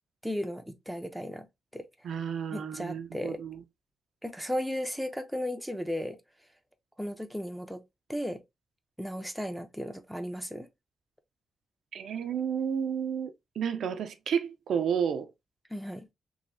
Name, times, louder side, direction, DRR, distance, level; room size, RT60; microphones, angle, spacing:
voice 1, 0.2-1.5 1.7-1.9 2.5-3.4 4.2-6.2 7.0-7.8 8.1-8.4 9.0-10.7 15.7-16.1, equal, ahead, 0.5 m, -35 dB
voice 2, 2.0-3.6 11.9-15.3, right 7 dB, 80° right, 0.4 m, -31 dB
3.1 x 2.7 x 2.5 m
cardioid pair, 95°, 0 cm